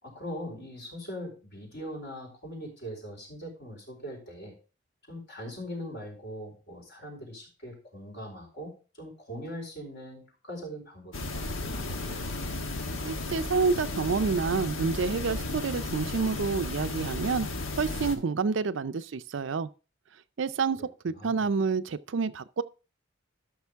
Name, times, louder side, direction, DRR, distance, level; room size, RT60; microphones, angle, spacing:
voice 1, 0.0-4.5 5.1-11.2 11.5-12.2 20.7-21.4, equal, 60° left, 4.6 m, -41 dB
sound 1, 11.1-18.2, left 2 dB, 85° left, 1.2 m, -34 dB
voice 2, 13.0-17.5 17.8-19.7 20.4-20.8 21.0-22.6, right 4 dB, 65° right, 0.5 m, -28 dB
12.5 x 6.2 x 3.5 m
head